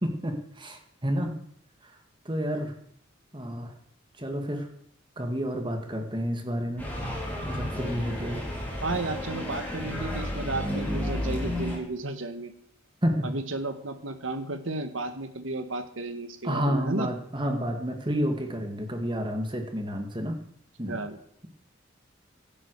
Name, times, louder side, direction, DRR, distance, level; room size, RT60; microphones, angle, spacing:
voice 1, 0.0-1.4 1.8-2.0 2.3-2.8 3.3-3.7 4.2-4.7 5.2-6.9 7.3-8.5 13.0-13.3 16.4-20.4 20.8-21.0, equal, 25° right, 5 dB, 2.1 m, -30 dB
sound 1, 6.8-11.8, left 1 dB, 10° left, 4.5 m, -32 dB
voice 2, 8.8-12.5 13.2-17.1 20.9-21.2, right 2 dB, 85° right, 9 dB, 1.7 m, -33 dB
16.0 x 11.5 x 4.9 m, 0.67 s
head